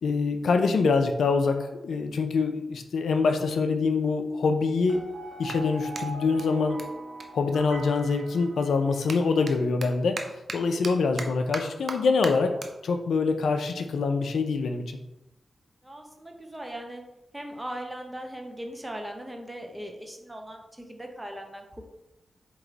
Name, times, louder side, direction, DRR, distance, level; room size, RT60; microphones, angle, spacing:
voice 1, 0.0-5.0 5.4-6.8 7.3-10.2 10.5-12.5 12.8-15.0, left 4 dB, 85° left, 6 dB, 0.4 m, -25 dB
sound 1, 4.9-9.2, right 2 dB, 45° right, 1.3 m, -40 dB
Clapping, 5.4-8.2 8.5-15.1, right 3 dB, 60° right, 0.6 m, -42 dB
voice 2, 15.8-17.0 17.3-21.8, right 1 dB, 15° right, 3 dB, 0.9 m, -39 dB
4.6 x 2.9 x 3.8 m, 0.92 s
cardioid pair, 50°, 0 cm